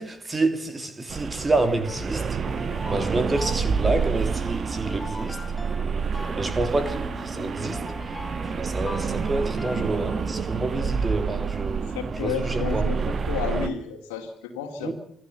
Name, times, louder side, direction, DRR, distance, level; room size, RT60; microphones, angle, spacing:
voice 1, 0.0-2.4 2.9-5.4 6.4-7.8 8.6-12.0 12.2-12.9 14.8-14.9, right 2 dB, 25° right, 3.1 m, -28 dB
sound 1, 1.1-13.7, right 5 dB, 40° right, 1.5 m, -28 dB
sound 2, 1.6-10.8, left 2 dB, 10° left, 2.1 m, -40 dB
voice 2, 11.9-14.9, left 6 dB, 70° left, 2.6 m, -31 dB
28.0 x 16.0 x 7.0 m
figure-of-eight pair, 45°, 0 cm